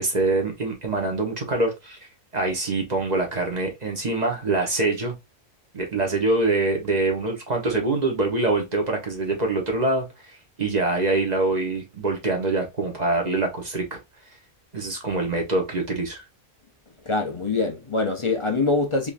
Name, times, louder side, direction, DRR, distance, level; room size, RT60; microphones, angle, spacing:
voice 1, 0.0-2.0 2.3-5.2 5.7-10.1 10.6-14.0 14.7-16.2, right 2 dB, 35° right, 1.1 m, -24 dB
voice 2, 17.1-19.1, left 3 dB, 40° left, 0.4 m, -24 dB
3.7 x 3.1 x 2.5 m
omnidirectional pair, 1.4 m